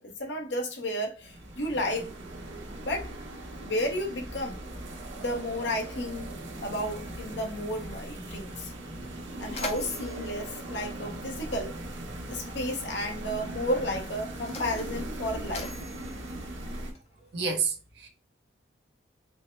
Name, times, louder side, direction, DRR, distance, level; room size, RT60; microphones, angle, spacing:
voice 1, 0.0-2.2 2.8-3.1 3.6-4.6 5.2-6.3 6.6-8.7 9.4-11.8 12.3-15.7, left 1 dB, 70° left, 1.0 m, -32 dB
sound 1, 1.2-16.9, right 1 dB, 85° right, 1.2 m, -39 dB
Mechanisms, 9.5-11.8 12.8-12.9 13.7-17.3, left 3 dB, 35° left, 0.7 m, -44 dB
voice 2, 17.3-18.1, right 5 dB, 60° right, 1.0 m, -29 dB
4.5 x 2.2 x 3.2 m
head